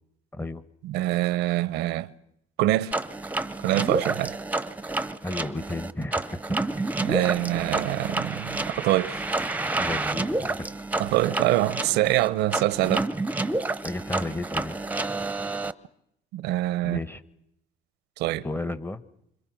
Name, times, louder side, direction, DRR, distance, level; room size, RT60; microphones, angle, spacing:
voice 1, 0.3-0.6 5.2-6.4 9.8-10.7 13.8-14.8 16.8-17.2 18.4-19.0, left 2 dB, 10° left, 1.2 m, -33 dB
voice 2, 0.8-2.1 2.6-2.9 3.6-4.4 7.0-9.2 11.0-13.0 16.3-17.0 18.2-18.5, right 16 dB, 90° right, 0.8 m, -25 dB
sound 1, 2.9-15.7, right 2 dB, 10° right, 0.8 m, -29 dB
26.0 x 26.0 x 6.2 m
cardioid pair, 110°, 17 cm